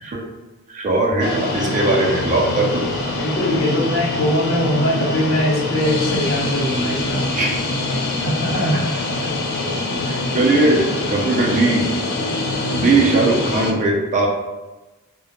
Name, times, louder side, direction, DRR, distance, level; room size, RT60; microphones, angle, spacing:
voice 1, 0.7-2.9 7.3-7.5 7.9-8.0 10.1-11.9 12.7-14.3, right 2 dB, 35° right, -1 dB, 0.4 m, -19 dB
sound 1, 1.2-13.7, left 2 dB, 50° left, 0.3 m, -24 dB
voice 2, 3.2-7.2 8.2-8.8, equal, 70° left, -5 dB, 0.8 m, -21 dB
2.1 x 2.0 x 2.8 m, 1.1 s
head